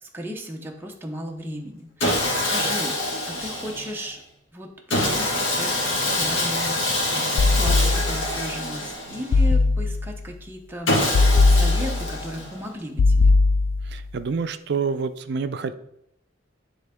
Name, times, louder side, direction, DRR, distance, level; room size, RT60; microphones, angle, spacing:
voice 1, 0.0-2.1 2.3-3.0 3.3-4.2 4.5-13.3, equal, 10° right, 1 dB, 0.6 m, -35 dB
Sawing, 2.0-4.0 4.9-9.4 10.9-12.7, left 1 dB, 90° left, 1.6 m, -25 dB
sound 1, 7.4-8.4 9.3-10.2 11.1-12.2 13.0-14.1, left 3 dB, 75° left, 0.3 m, -19 dB
voice 2, 13.9-15.7, right 5 dB, 60° right, 11 dB, 0.4 m, -28 dB
9.0 x 3.6 x 3.5 m, 0.76 s
head